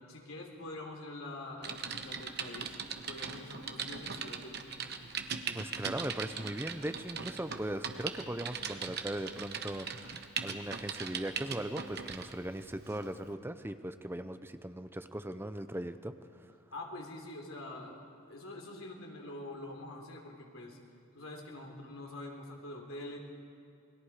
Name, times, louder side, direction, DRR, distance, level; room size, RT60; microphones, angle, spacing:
voice 1, 0.0-2.7 3.1-4.9 16.7-18.0 18.3-20.8 21.1-23.2, left 2 dB, 85° left, 1 dB, 3.5 m, -45 dB
Typing, 1.6-12.3 12.9-13.1, right 6 dB, 50° right, 1.1 m, -40 dB
voice 2, 5.5-16.1, right 1 dB, 10° right, 10 dB, 0.6 m, -39 dB
28.5 x 21.0 x 4.9 m, 2.4 s
head